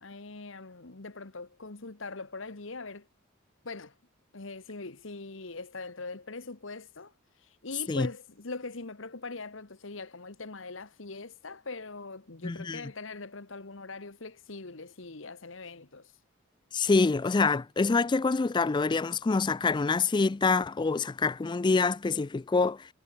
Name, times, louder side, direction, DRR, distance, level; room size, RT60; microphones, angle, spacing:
voice 1, 0.0-3.1 3.6-3.9 4.3-7.1 7.4-16.1, left 3 dB, 65° left, 1.5 m, -42 dB
voice 2, 12.4-12.8 16.7-22.9, left 4 dB, 20° left, 0.3 m, -26 dB
head